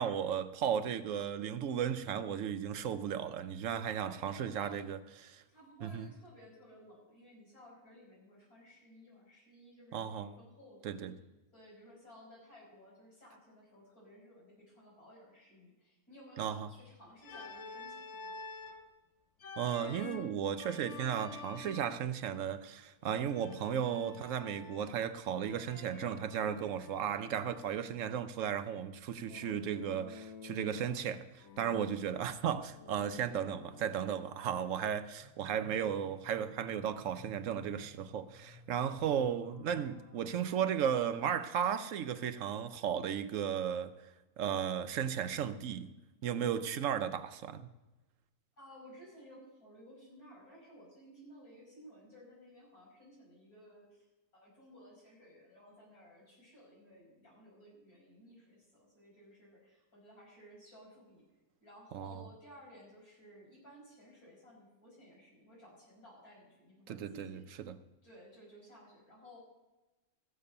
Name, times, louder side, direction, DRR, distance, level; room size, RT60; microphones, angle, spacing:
voice 1, 0.0-5.4 5.8-6.1 9.9-10.3 10.8-11.1 16.4-16.7 19.6-43.9 44.4-45.9 46.2-47.7 61.9-62.2 66.9-67.8, right 8 dB, 65° right, 1.0 m, -35 dB
voice 2, 4.0-4.9 5.5-11.0 11.5-18.4 48.6-54.1 54.3-61.2 61.6-67.4 68.0-69.4, equal, 70° left, 6.0 m, -57 dB
Organ, 17.2-18.9 19.4-22.0 23.3-25.0 25.4-27.7 29.3-31.1 31.4-34.1, left 4 dB, 55° left, 1.1 m, -49 dB
sound 1, 35.2-40.5, left 2 dB, 20° left, 3.8 m, -56 dB
15.0 x 6.9 x 6.5 m
omnidirectional pair, 1.6 m